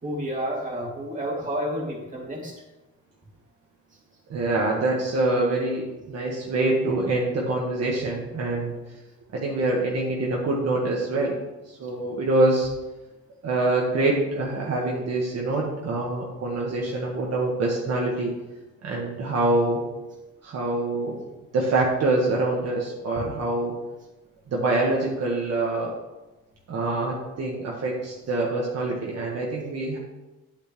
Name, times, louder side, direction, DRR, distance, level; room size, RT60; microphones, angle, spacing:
voice 1, 0.0-2.5, equal, 25° right, -2 dB, 2.6 m, -30 dB
voice 2, 4.3-8.7 9.3-11.4 11.7-12.7 13.4-18.3 18.8-19.8 20.4-21.2 21.5-23.7 24.5-25.9 26.7-30.0, right 2 dB, 55° right, -3 dB, 1.5 m, -25 dB
8.6 x 8.5 x 3.1 m, 1.1 s
cardioid pair, 90°, 30 cm